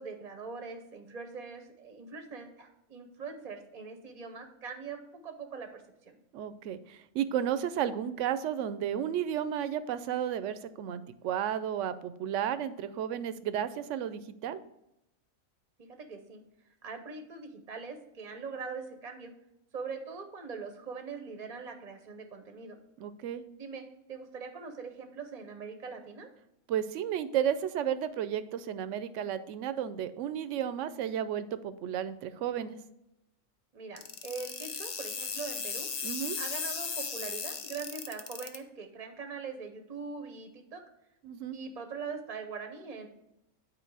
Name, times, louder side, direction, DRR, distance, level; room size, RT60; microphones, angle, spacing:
voice 1, 0.0-6.2 16.0-16.4 16.8-19.3 19.7-22.8 23.5-26.3 33.7-35.9 36.4-40.8 41.5-43.1, right 5 dB, 40° right, 6 dB, 0.7 m, -42 dB
voice 2, 6.3-14.6 23.0-23.4 26.7-32.8 36.0-36.4 41.2-41.6, right 9 dB, 70° right, 13 dB, 0.9 m, -33 dB
sound 1, 34.0-38.6, left 5 dB, 50° left, 0.5 m, -36 dB
9.0 x 4.4 x 4.7 m, 0.86 s
omnidirectional pair, 1.4 m